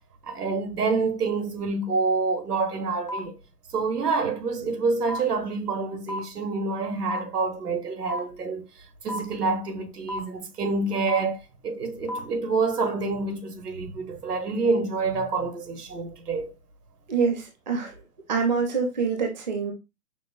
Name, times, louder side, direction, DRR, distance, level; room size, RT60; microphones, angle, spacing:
voice 1, 0.2-3.4 3.7-8.7 9.0-16.5, right 4 dB, 75° right, 1.1 m, -27 dB
sound 1, 3.1-3.2 4.1-4.2 5.1-5.2 6.1-6.2 7.1-7.2 8.1-8.2 9.1-9.2 10.1-10.2 11.1-11.2 12.1-12.2, left 1 dB, 30° left, 0.4 m, -30 dB
voice 2, 17.1-17.9 18.3-19.7, right 5 dB, 30° right, 0.5 m, -25 dB
5.8 x 2.1 x 2.3 m
hypercardioid pair, 155°, 46 cm